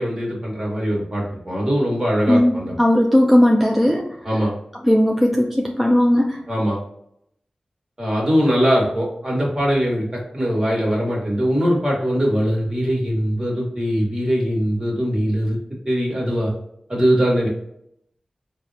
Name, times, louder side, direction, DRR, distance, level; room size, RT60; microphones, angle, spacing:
voice 1, 0.0-2.7 4.2-4.5 6.5-6.8 8.0-15.6 15.8-16.5 16.9-17.5, equal, 30° right, -4 dB, 1.4 m, -21 dB
voice 2, 2.3-4.1 4.8-6.4, left 1 dB, 5° right, 0 dB, 0.4 m, -17 dB
3.8 x 2.1 x 2.6 m, 0.75 s
wide cardioid pair, 60°, 2 cm